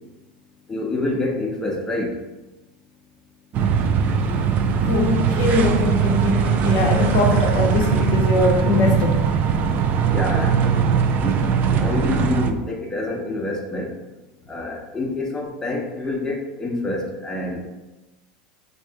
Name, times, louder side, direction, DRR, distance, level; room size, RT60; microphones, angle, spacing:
voice 1, 0.7-2.2 10.0-10.6 11.2-11.4 11.8-13.9 14.5-17.7, left 2 dB, 15° left, -1 dB, 0.7 m, -27 dB
sound 1, 3.5-12.5, right 6 dB, 45° right, 0.3 m, -20 dB
voice 2, 4.8-9.3 10.0-10.1, left 3 dB, 60° left, 2 dB, 0.5 m, -22 dB
3.3 x 2.7 x 3.4 m, 1.0 s
hypercardioid pair, 95°, 4 cm